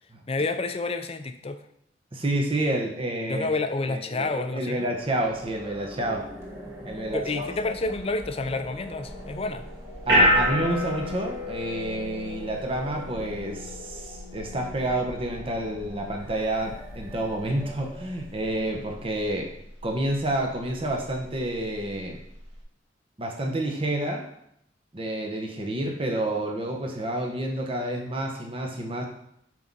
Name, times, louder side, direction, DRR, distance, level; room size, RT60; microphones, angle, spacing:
voice 1, 0.3-1.6 3.3-4.9 7.1-9.7, left 3 dB, 30° left, 9 dB, 0.5 m, -29 dB
voice 2, 2.1-3.5 3.9-6.3 6.9-7.5 10.1-19.5 19.8-22.2 23.2-24.3 24.9-29.1, right 1 dB, 30° right, 2 dB, 0.9 m, -29 dB
sound 1, 4.8-19.0, equal, 15° right, 1.8 m, -43 dB
sound 2, 9.1-22.6, left 1 dB, 65° right, 2.0 m, -31 dB
6.3 x 4.6 x 5.4 m, 0.74 s
head